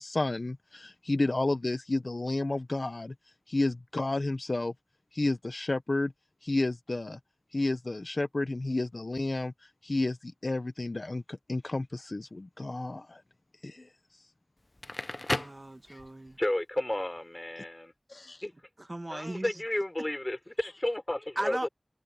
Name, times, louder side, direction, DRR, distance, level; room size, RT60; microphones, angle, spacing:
voice 1, 0.0-3.1 3.5-4.7 5.1-6.1 6.4-7.2 7.5-9.5 9.8-13.2 13.6-13.9 15.9-16.0 18.1-18.5 20.6-20.7, left 2 dB, 75° left, 0.7 m, -31 dB
Crackle, 14.6-16.4, left 1 dB, 50° left, 0.4 m, -35 dB
voice 2, 15.4-16.4 18.8-19.5 21.4-21.7, right 1 dB, 50° right, 1.7 m, -37 dB
voice 3, 16.4-17.9 18.4-18.5 19.1-21.7, left 1 dB, 35° left, 4.8 m, -32 dB
wide cardioid pair, 45°, 0 cm